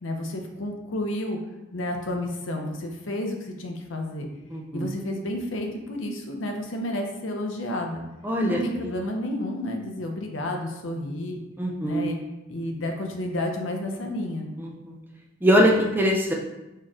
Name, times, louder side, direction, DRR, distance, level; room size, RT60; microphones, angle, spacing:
voice 1, 0.0-1.4 1.7-4.3 4.7-8.0 8.4-11.4 11.8-12.2 12.5-14.5, left 1 dB, 75° left, 3 dB, 0.7 m, -31 dB
voice 2, 4.5-4.9 8.2-8.6 11.6-12.1 14.6-14.9 15.4-16.3, equal, 10° right, 0 dB, 0.4 m, -22 dB
4.4 x 3.1 x 3.6 m, 1.0 s
head